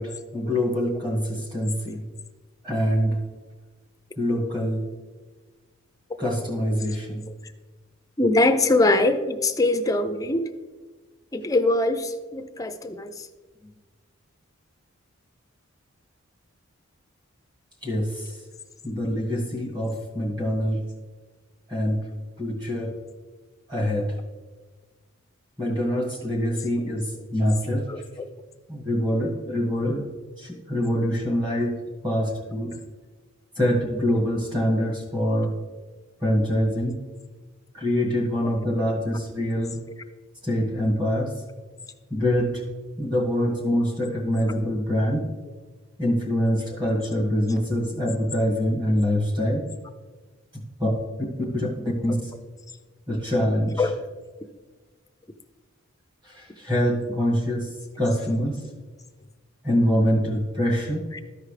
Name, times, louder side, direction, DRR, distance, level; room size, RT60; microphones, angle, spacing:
voice 1, 0.0-2.0 2.6-3.2 4.2-4.8 6.2-7.2 17.8-18.4 18.8-20.8 21.7-22.0 22.4-22.9 23.7-24.2 25.6-27.9 28.7-30.0 30.4-32.8 33.6-35.6 36.2-37.0 37.7-39.8 40.4-41.3 42.1-42.6 43.0-45.2 46.0-49.6 50.8-50.9 51.5-52.3 53.1-53.8 56.2-57.7 58.0-58.6 59.6-61.0, equal, 20° right, -2 dB, 1.9 m, -25 dB
voice 2, 8.2-10.5 11.3-13.3 27.9-28.3 38.4-38.5 53.8-54.0 61.1-61.2, left 2 dB, 15° left, 7 dB, 0.4 m, -23 dB
13.5 x 4.8 x 3.3 m, 1.4 s
head